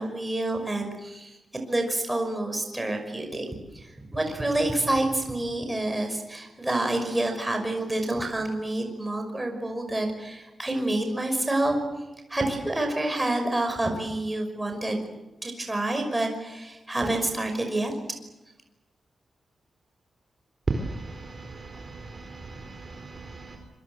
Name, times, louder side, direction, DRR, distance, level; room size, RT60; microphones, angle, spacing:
voice 1, 0.0-1.4 1.7-3.5 3.7-11.8 12.3-15.0 15.4-17.9, right 1 dB, 10° right, 4 dB, 5.7 m, -28 dB
voice 2, 20.8-22.7 23.0-23.6, right 1 dB, 30° right, 4 dB, 4.5 m, -39 dB
26.5 x 24.0 x 8.0 m, 1.0 s
wide cardioid pair, 150°, 0 cm